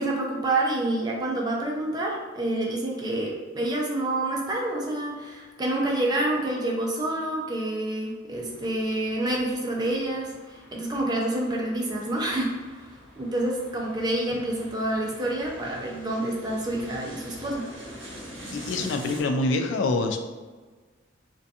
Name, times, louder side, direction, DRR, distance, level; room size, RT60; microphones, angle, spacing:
voice 1, 0.0-10.3 10.7-12.5 13.2-17.7, right 1 dB, 20° right, -2 dB, 0.4 m, -28 dB
sound 1, 8.3-19.2, equal, 85° right, 0.7 m, -45 dB
voice 2, 18.5-20.2, left 2 dB, 70° left, 6 dB, 0.3 m, -25 dB
2.5 x 2.2 x 2.6 m, 1.3 s
head